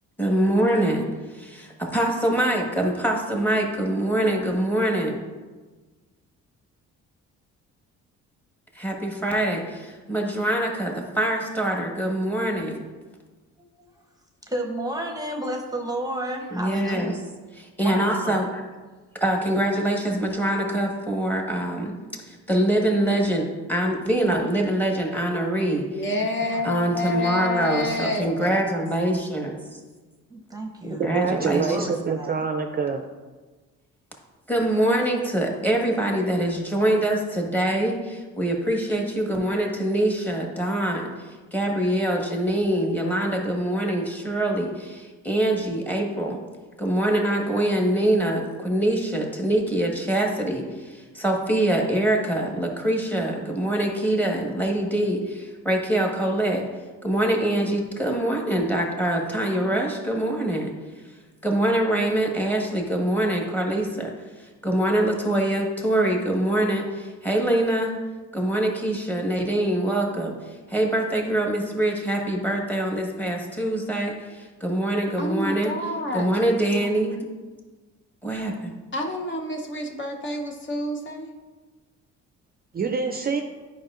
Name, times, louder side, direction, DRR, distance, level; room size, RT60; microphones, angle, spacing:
voice 1, 0.2-1.1 1.3-5.2 8.7-12.8 16.5-17.1 17.5-18.6 19.2-21.9 22.3-26.0 26.6-29.5 31.0-31.9 34.5-41.1 41.5-46.4 46.8-56.6 57.0-60.7 61.4-64.1 64.4-67.9 68.3-75.7 76.1-77.2 78.2-78.7, right 1 dB, 5° left, 0 dB, 1.4 m, -24 dB
voice 2, 13.6-13.9 14.5-17.2 17.8-18.4 26.1-26.3 30.3-31.1 31.7-32.5, right 1 dB, 10° right, 2 dB, 0.8 m, -32 dB
voice 3, 25.9-28.6 75.2-76.3 78.9-81.3, left 2 dB, 40° left, 3 dB, 0.8 m, -28 dB
voice 4, 31.0-33.1 82.7-83.4, right 5 dB, 30° right, 5 dB, 0.4 m, -26 dB
9.2 x 5.4 x 2.5 m, 1.3 s
cardioid pair, 90°, 30 cm